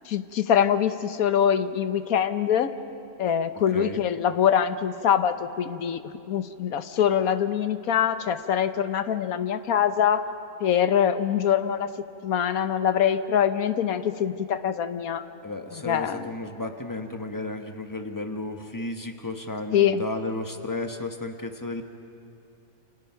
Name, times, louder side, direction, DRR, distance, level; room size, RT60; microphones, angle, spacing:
voice 1, 0.0-2.7 3.2-10.2 10.6-11.9 12.2-15.2 15.8-16.2 19.7-20.0, left 9 dB, 80° left, 11 dB, 1.4 m, -24 dB
voice 2, 15.4-21.8, left 2 dB, 15° left, 5 dB, 1.2 m, -33 dB
29.0 x 26.0 x 5.8 m, 2.7 s
omnidirectional pair, 1.5 m